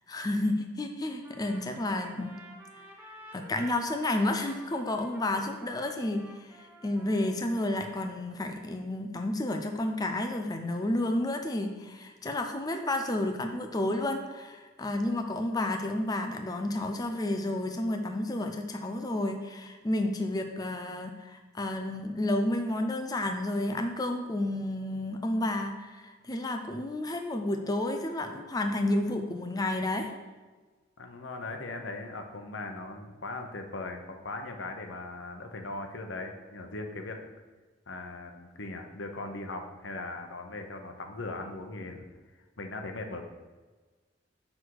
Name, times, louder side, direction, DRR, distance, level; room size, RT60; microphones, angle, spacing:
voice 1, 0.1-2.4 3.3-30.1, left 1 dB, 20° left, 4 dB, 0.6 m, -31 dB
Trumpet, 1.2-8.2, right 1 dB, 10° right, 1.0 m, -51 dB
voice 2, 31.0-37.2 37.9-42.1 42.6-43.2, left 2 dB, 90° left, 4 dB, 1.0 m, -39 dB
6.4 x 6.2 x 4.7 m, 1.3 s
head